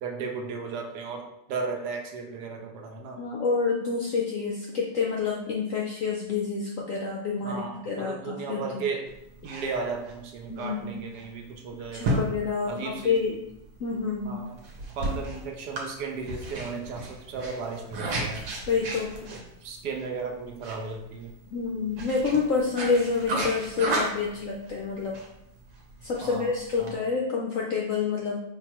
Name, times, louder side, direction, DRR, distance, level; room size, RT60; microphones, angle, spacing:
voice 1, 0.0-3.2 7.4-9.1 9.4-12.2 12.7-13.2 14.2-14.6 15.0-18.5 19.3-21.4 26.2-26.5 26.8-27.0, right 4 dB, 70° right, 3 dB, 1.1 m, -35 dB
voice 2, 3.2-8.8 10.5-10.9 11.9-13.4 13.8-14.4 18.7-19.3 21.5-25.2 26.0-28.4, left 5 dB, 70° left, -1 dB, 0.7 m, -28 dB
sound 1, 9.1-26.9, right 1 dB, 85° right, 1.6 m, -35 dB
4.9 x 3.5 x 3.0 m, 0.82 s
omnidirectional pair, 1.9 m